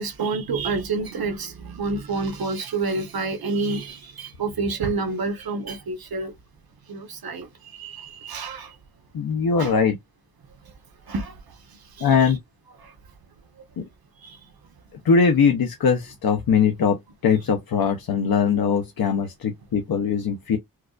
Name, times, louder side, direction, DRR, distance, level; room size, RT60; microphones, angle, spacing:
voice 1, 0.0-6.3 6.9-8.8 9.6-9.8 10.6-10.7 11.1-12.3 12.8-12.9 13.6-13.7 14.2-14.5, right 3 dB, 75° right, 1.0 m, -29 dB
voice 2, 9.1-10.0 12.0-12.4 13.8-13.9 15.0-20.6, left 6 dB, 70° left, 0.7 m, -21 dB
4.6 x 2.3 x 2.3 m
wide cardioid pair, 140°, 37 cm